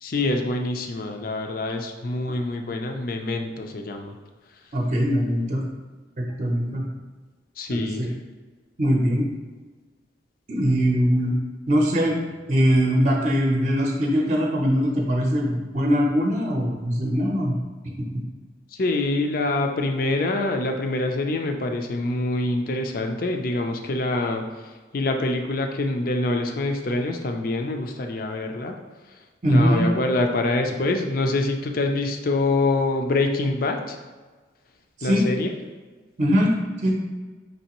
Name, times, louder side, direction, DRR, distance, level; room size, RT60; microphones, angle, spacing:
voice 1, 0.0-4.1 7.6-8.1 18.8-24.4 24.9-28.8 29.5-34.0 35.0-35.5, left 2 dB, 50° left, 4 dB, 0.4 m, -25 dB
voice 2, 4.7-5.6 6.2-6.9 7.7-8.1 8.8-9.2 10.5-11.3 11.7-12.1 12.5-17.6 18.1-18.2 29.4-29.9 35.0-35.3 36.2-36.5 36.8-36.9, equal, 40° right, -1 dB, 0.6 m, -21 dB
5.4 x 3.2 x 2.9 m, 1.4 s
head